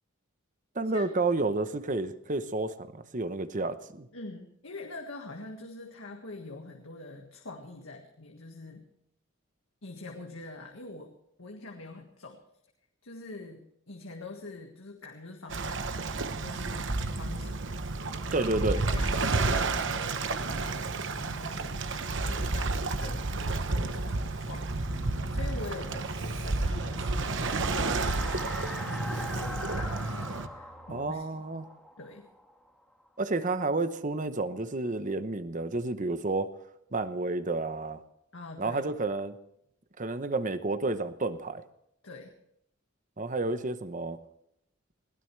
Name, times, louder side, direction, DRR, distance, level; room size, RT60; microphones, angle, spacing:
voice 1, 0.7-4.1 18.3-18.8 30.9-31.7 33.2-36.5 36.9-38.0 38.6-39.3 40.0-41.6 43.2-44.2, right 2 dB, 40° right, 11 dB, 0.9 m, -30 dB
voice 2, 4.1-8.9 9.8-11.1 11.4-12.4 13.0-15.8 16.4-17.8 18.4-21.8 22.2-24.1 24.4-31.3 32.0-32.3 38.3-38.9 42.0-42.3, left 2 dB, 85° left, 2 dB, 1.8 m, -44 dB
Waves surf, 15.5-30.5, right 3 dB, 65° right, 1.0 m, -31 dB
sound 1, 24.2-33.1, equal, ahead, 1.6 m, -43 dB
Bass guitar, 29.9-31.1, equal, 45° left, 2.3 m, -50 dB
21.0 x 16.5 x 3.3 m, 0.76 s
head